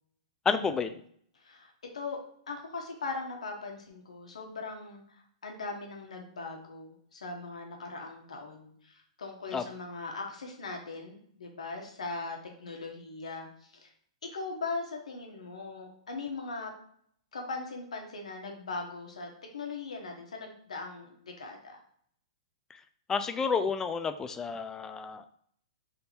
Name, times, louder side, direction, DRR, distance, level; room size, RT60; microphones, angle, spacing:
voice 1, 0.5-0.9 9.5-9.6 23.1-25.3, left 5 dB, 15° left, 9 dB, 0.4 m, -30 dB
voice 2, 1.3-2.2 2.5-13.9 14.2-16.7 17.3-21.8, left 3 dB, 85° left, 2 dB, 1.1 m, -40 dB
3.5 x 2.7 x 4.3 m, 0.64 s
hypercardioid pair, 130°, 3 cm